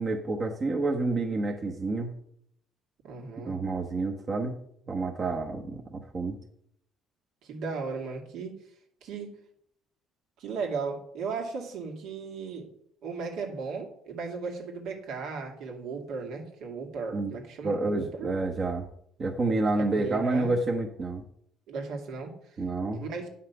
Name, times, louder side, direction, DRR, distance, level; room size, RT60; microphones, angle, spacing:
voice 1, 0.0-2.1 3.4-4.6 4.9-6.4 17.1-17.3 17.6-18.9 19.2-21.2 22.6-23.0, right 3 dB, 35° right, 1 dB, 1.1 m, -29 dB
voice 2, 3.0-3.6 7.4-8.6 9.0-9.4 10.4-12.7 13.0-18.3 19.8-20.5 21.7-22.3 22.9-23.3, right 4 dB, 75° right, 2 dB, 2.3 m, -36 dB
10.0 x 5.8 x 5.8 m, 0.69 s
cardioid pair, 130°, 0 cm